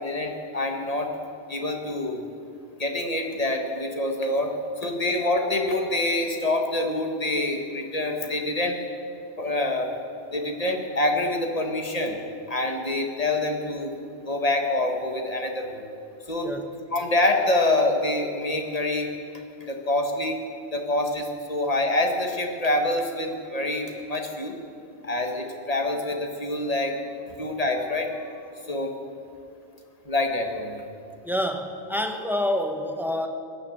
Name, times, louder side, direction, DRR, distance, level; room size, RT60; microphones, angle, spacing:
voice 1, 0.0-1.1 1.5-2.2 2.8-8.8 9.4-9.9 10.3-12.2 12.5-13.9 14.2-15.8 16.3-16.6 16.9-19.1 19.6-20.4 20.7-24.6 25.0-28.9 30.0-30.8, left 2 dB, 35° left, 3 dB, 1.6 m, -26 dB
voice 2, 31.2-33.3, left 1 dB, ahead, 5 dB, 1.0 m, -27 dB
17.0 x 10.5 x 7.4 m, 2.5 s
omnidirectional pair, 1.2 m